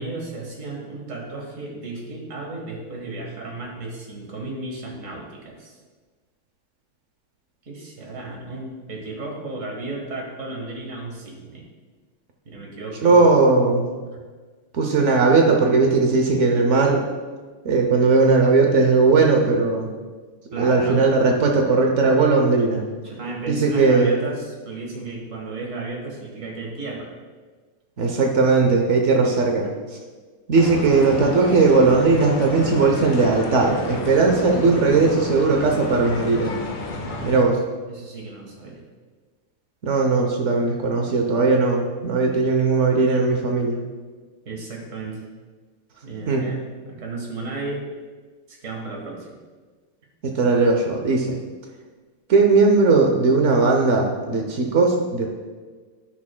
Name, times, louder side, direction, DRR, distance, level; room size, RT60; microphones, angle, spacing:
voice 1, 0.0-5.8 7.6-11.6 12.4-13.3 14.1-14.2 20.5-21.0 23.0-27.1 37.0-37.3 37.9-38.8 44.4-45.2 46.0-47.9 48.5-49.4, right 2 dB, 40° right, -1 dB, 1.7 m, -34 dB
voice 2, 13.0-13.8 14.7-17.0 17.6-19.9 20.5-22.8 23.5-24.1 28.0-29.7 30.5-36.6 37.2-37.6 39.8-43.8 46.3-46.4 50.2-51.3 52.3-55.3, right 3 dB, 85° right, 2 dB, 0.6 m, -18 dB
sound 1, 30.5-37.4, left 2 dB, 70° left, 1.8 m, -31 dB
13.5 x 6.1 x 2.2 m, 1.4 s
omnidirectional pair, 2.3 m